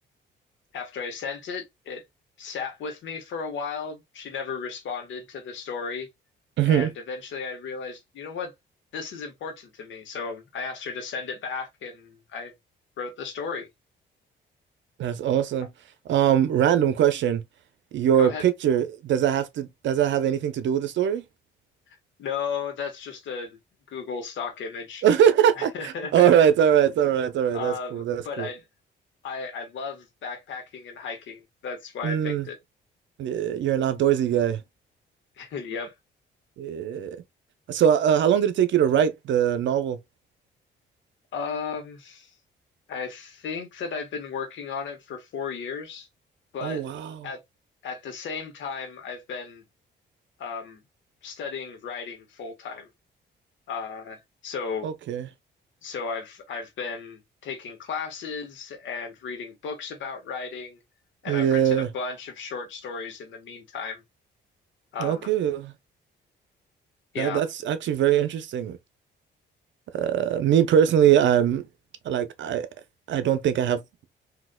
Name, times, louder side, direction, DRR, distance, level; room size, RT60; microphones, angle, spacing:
voice 1, 0.7-2.0 2.4-6.1 6.6-8.5 8.9-12.5 13.0-13.7 18.2-18.4 22.2-23.6 23.9-25.0 25.6-26.3 27.5-28.6 29.2-32.6 35.4-35.9 41.3-42.3 42.9-46.1 46.5-46.8 47.2-47.4 47.8-49.6 50.4-50.8 51.2-52.9 53.7-54.2 54.4-54.9 55.8-60.8 61.2-64.0 64.9-65.3 67.1-67.4, left 5 dB, 70° left, 1.4 m, -34 dB
voice 2, 6.6-6.9 15.0-15.7 16.1-17.4 17.9-21.2 25.0-28.5 32.0-32.5 33.2-34.6 36.6-37.2 37.7-40.0 46.6-47.3 54.8-55.3 61.3-61.9 65.0-65.7 67.2-68.8 69.9-71.6 72.0-72.7 73.1-73.8, right 9 dB, 70° right, 0.7 m, -22 dB
3.9 x 2.8 x 2.2 m
cardioid pair, 90°, 20 cm